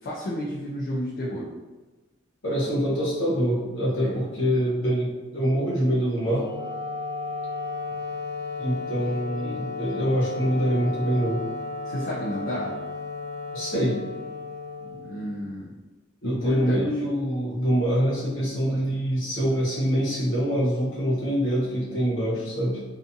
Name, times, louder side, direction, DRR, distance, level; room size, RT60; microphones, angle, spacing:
voice 1, 0.0-1.5 4.0-4.2 11.8-12.7 15.0-15.7 16.2-16.9, equal, 50° left, -7 dB, 0.4 m, -31 dB
voice 2, 2.4-6.5 8.6-11.4 13.5-14.0 16.2-22.8, equal, 75° left, -7 dB, 1.0 m, -25 dB
Wind instrument woodwind instrument, 6.2-15.5, left 4 dB, 40° right, 0.7 m, -34 dB
2.5 x 2.4 x 2.6 m, 1.2 s
head